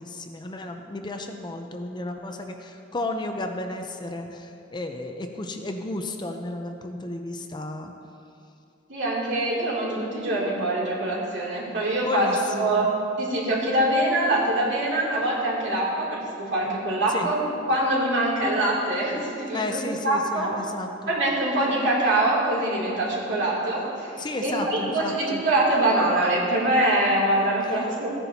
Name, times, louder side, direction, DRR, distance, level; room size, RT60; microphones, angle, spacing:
voice 1, 0.0-7.9 12.0-12.9 17.1-17.3 19.5-21.1 24.2-25.4, left 2 dB, 25° left, 4 dB, 0.6 m, -33 dB
voice 2, 8.9-12.9 13.2-20.5 21.1-28.1, right 1 dB, 70° right, -5 dB, 2.6 m, -24 dB
15.0 x 9.9 x 2.8 m, 2.5 s
head